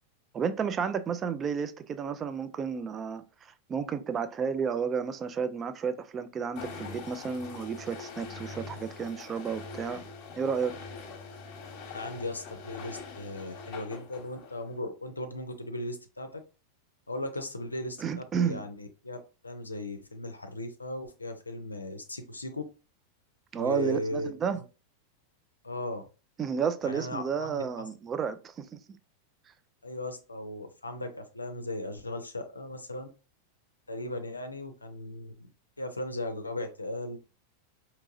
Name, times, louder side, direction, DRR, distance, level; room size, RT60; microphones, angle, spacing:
voice 1, 0.3-10.0 10.4-10.7 18.0-18.6 23.5-24.6 26.4-28.8, right 6 dB, 25° right, 0.4 m, -32 dB
sound 1, 6.6-14.8, left 4 dB, 40° left, 1.0 m, -43 dB
voice 2, 11.9-16.4 17.1-18.0 18.4-19.2 19.4-22.6 23.6-24.6 25.6-26.0 26.8-27.6 29.8-33.1 33.9-35.5 35.8-37.2, left 1 dB, 80° left, 0.5 m, -37 dB
4.6 x 2.9 x 2.5 m
figure-of-eight pair, 90°, 0 cm